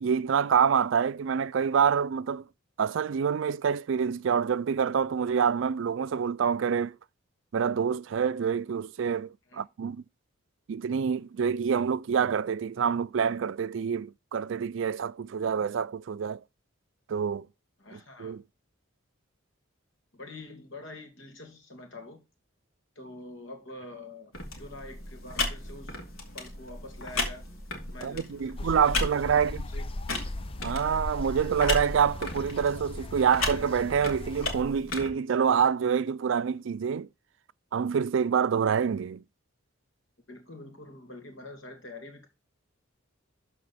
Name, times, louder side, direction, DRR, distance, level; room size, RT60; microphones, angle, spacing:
voice 1, 0.0-2.4 2.8-7.0 7.5-10.0 10.7-16.4 17.1-17.5 17.9-18.4 28.0-29.6 30.6-37.1 37.7-39.2, right 7 dB, 65° right, 0.4 m, -27 dB
voice 2, 17.8-18.3 20.1-22.2 23.0-26.0 26.3-27.5 27.9-28.8 29.1-29.9 40.3-42.3, left 2 dB, 65° left, 2.6 m, -45 dB
sound 1, 24.3-35.1, left 2 dB, 85° left, 2.6 m, -35 dB
sound 2, 28.6-34.6, left 2 dB, 25° left, 0.4 m, -38 dB
12.5 x 4.3 x 4.2 m
head